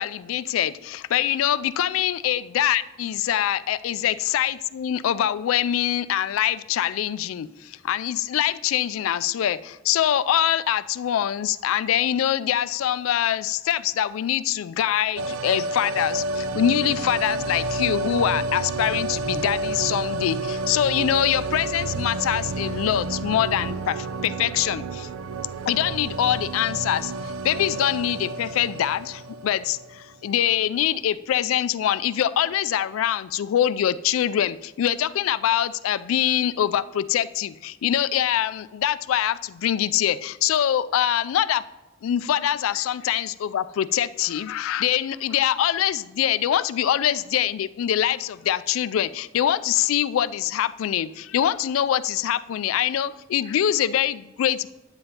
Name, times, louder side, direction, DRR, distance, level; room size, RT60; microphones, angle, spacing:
voice 1, 0.0-25.1 25.7-41.6 42.0-54.7, left 10 dB, 85° left, 15 dB, 0.3 m, -24 dB
sound 1, 15.2-30.0 30.3-30.4, right 2 dB, 90° right, 0.4 m, -30 dB
8.8 x 8.5 x 2.8 m, 1.1 s
head